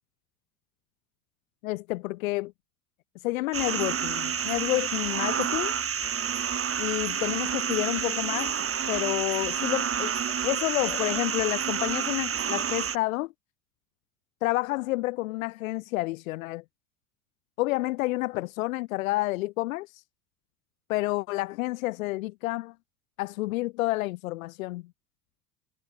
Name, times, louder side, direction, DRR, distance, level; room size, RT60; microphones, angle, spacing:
voice 1, 1.6-2.5 3.2-5.7 6.8-8.6 8.9-10.1 10.4-13.3 14.4-16.6 17.6-19.9 20.9-22.7 23.2-24.8, left 19 dB, 60° left, 4.0 m, -29 dB
sound 1, 3.5-13.0, right 8 dB, 30° right, 7.2 m, -29 dB
figure-of-eight pair, 70°, 45 cm